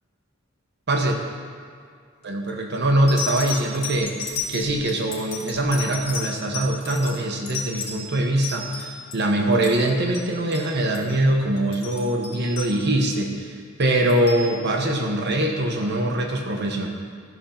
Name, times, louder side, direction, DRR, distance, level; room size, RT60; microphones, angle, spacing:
sound 1, 2.2-2.5 3.1-9.2 9.5-10.3 10.5-10.7 10.9-11.2 11.6-13.2 13.8-14.5 15.3-15.4, left 5 dB, 55° left, 2.2 m, -33 dB
voice 1, 2.2-16.9, right 1 dB, 55° right, 2 dB, 1.1 m, -23 dB
14.0 x 5.2 x 5.8 m, 2.1 s
head